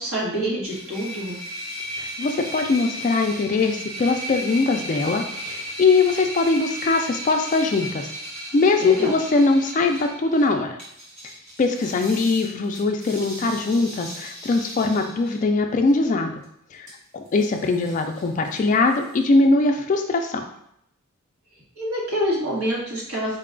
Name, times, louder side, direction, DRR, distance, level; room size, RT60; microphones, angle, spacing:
voice 1, 0.0-1.4 8.7-9.1 21.8-23.4, equal, 75° right, -5 dB, 1.4 m, -26 dB
sound 1, 0.6-10.5 10.8-15.4 16.4-16.5 16.9-17.0 17.3-18.6 18.9-19.2, equal, 35° right, 1.0 m, -36 dB
voice 2, 2.0-8.1 8.5-10.8 11.6-16.3 16.7-20.4, left 3 dB, 35° left, 5 dB, 0.3 m, -21 dB
3.9 x 2.3 x 3.7 m, 0.73 s
head